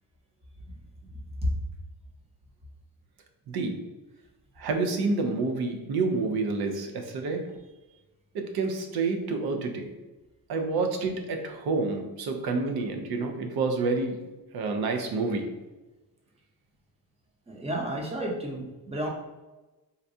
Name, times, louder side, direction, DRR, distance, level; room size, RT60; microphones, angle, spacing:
voice 1, 4.6-7.4 8.3-9.9 10.5-14.2 14.5-15.4, right 3 dB, 70° right, 4 dB, 0.6 m, -28 dB
voice 2, 17.5-19.1, right 1 dB, 15° right, -1 dB, 0.8 m, -32 dB
3.9 x 2.2 x 2.7 m, 1.1 s
cardioid pair, 105°, 40 cm